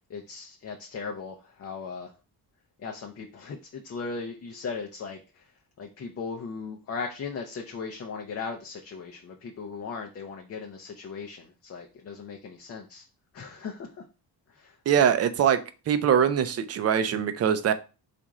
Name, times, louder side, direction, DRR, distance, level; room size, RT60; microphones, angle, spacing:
voice 1, 0.1-2.1 2.8-5.5 5.8-13.0 13.3-14.0 14.5-14.8, left 5 dB, 35° left, 0.5 m, -38 dB
voice 2, 14.9-15.6 15.9-17.7, right 8 dB, 40° right, 0.4 m, -22 dB
4.2 x 2.5 x 4.7 m
cardioid pair, 165°, 40 cm